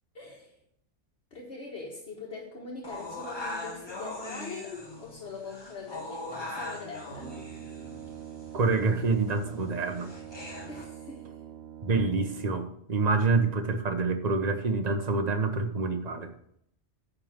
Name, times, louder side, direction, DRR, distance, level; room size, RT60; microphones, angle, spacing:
voice 1, 0.1-0.5 1.3-7.3 10.7-11.3, left 3 dB, 60° left, -3 dB, 1.7 m, -42 dB
sound 1, 2.8-10.8, left 2 dB, 20° left, 1.5 m, -41 dB
Brass instrument, 7.1-12.9, right 10 dB, 65° right, 0.8 m, -44 dB
voice 2, 8.5-10.1 11.8-16.3, right 3 dB, 40° right, 7 dB, 1.0 m, -27 dB
9.8 x 3.9 x 7.2 m, 0.71 s
omnidirectional pair, 1.2 m